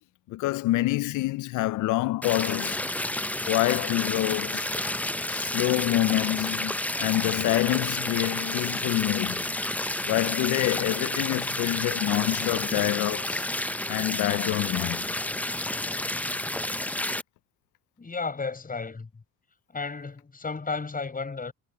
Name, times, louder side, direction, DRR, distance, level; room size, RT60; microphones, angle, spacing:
voice 1, 0.3-2.9 3.5-4.7 5.3-9.4 10.1-13.4 13.9-15.2, left 17 dB, 80° left, 0.5 m, -27 dB
sound 1, 2.2-17.2, left 1 dB, 5° left, 0.5 m, -30 dB
voice 2, 18.0-19.1 19.7-21.5, left 4 dB, 30° left, 6.3 m, -33 dB
cardioid pair, 90°, 30 cm